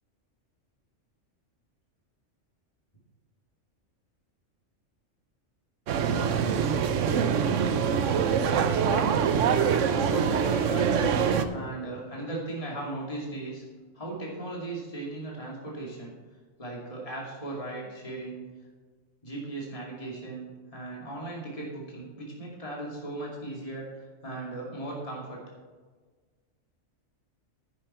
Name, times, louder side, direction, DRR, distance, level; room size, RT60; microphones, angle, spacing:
sound 1, 5.9-11.5, right 7 dB, 85° right, 1.1 m, -24 dB
voice 1, 8.8-9.2 10.0-10.9 11.5-13.6 13.9-16.1 16.6-18.4 19.2-23.9 24.2-25.4, right 2 dB, 30° left, -3 dB, 2.6 m, -37 dB
10.5 x 10.0 x 4.3 m, 1.4 s
omnidirectional pair, 1.3 m